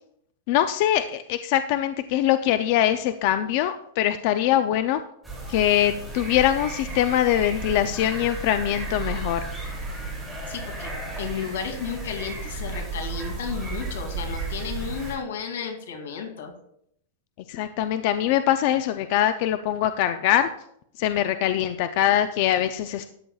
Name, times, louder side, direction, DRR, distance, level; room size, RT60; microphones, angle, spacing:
voice 1, 0.5-5.0 5.5-9.5 17.5-20.5 21.0-23.1, left 11 dB, 40° left, 10 dB, 0.4 m, -23 dB
sound 1, 5.2-15.1, right 2 dB, ahead, 2.8 m, -33 dB
voice 2, 10.5-10.9 11.2-16.5, left 6 dB, 85° left, 3 dB, 2.6 m, -33 dB
13.5 x 9.1 x 2.4 m, 0.70 s
supercardioid pair, 170°, 0 cm